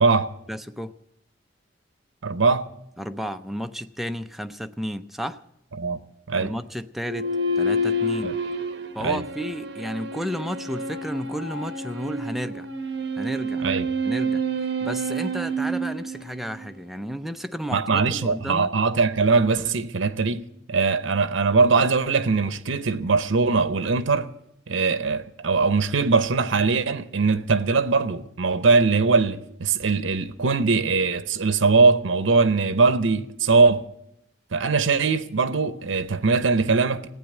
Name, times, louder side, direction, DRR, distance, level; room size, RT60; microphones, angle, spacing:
voice 1, 0.5-0.9 3.0-5.4 6.4-8.4 8.9-12.7 13.2-13.7 14.0-14.4 14.8-18.7, equal, ahead, 0.5 m, -32 dB
voice 2, 2.2-2.7 5.8-6.0 6.3-6.5 8.2-8.3 9.0-9.2 13.6-13.9 17.7-20.4 20.7-24.3 24.7-33.9 34.5-37.2, right 4 dB, 75° right, 0.8 m, -21 dB
sound 1, 7.0-16.7, right 1 dB, 55° right, 1.1 m, -28 dB
15.5 x 9.0 x 8.9 m
head